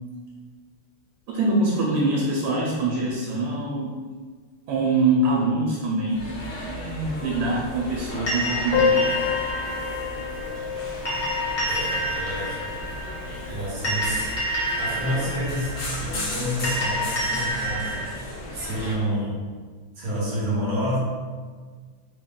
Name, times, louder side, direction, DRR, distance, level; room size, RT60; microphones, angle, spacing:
voice 1, 1.3-3.9 4.7-6.3 6.6-9.3, right 2 dB, 80° right, -3 dB, 1.5 m, -24 dB
sound 1, 6.1-18.9, left 1 dB, 65° left, 0.9 m, -36 dB
sound 2, 8.3-18.1, equal, 45° left, 1.2 m, -29 dB
Piano, 8.7-14.1 14.3-14.4 14.7-14.8 15.1-15.2 16.0-16.2, left 5 dB, 90° left, 1.6 m, -29 dB
voice 2, 11.7-12.8 13.4-14.3 14.7-19.5 20.0-21.0, equal, 55° right, -7 dB, 1.2 m, -29 dB
3.9 x 2.3 x 3.6 m, 1.5 s
omnidirectional pair, 2.4 m